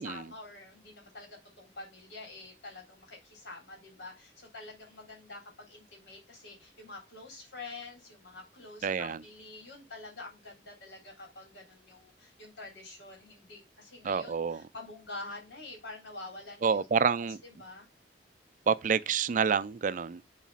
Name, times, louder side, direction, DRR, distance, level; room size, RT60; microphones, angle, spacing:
voice 1, 0.0-16.8 17.4-17.9, left 2 dB, 80° left, 3.7 m, -47 dB
voice 2, 8.8-9.2 14.0-14.6 16.6-17.4 18.7-20.2, right 6 dB, 45° right, 0.4 m, -28 dB
7.3 x 4.1 x 5.6 m
head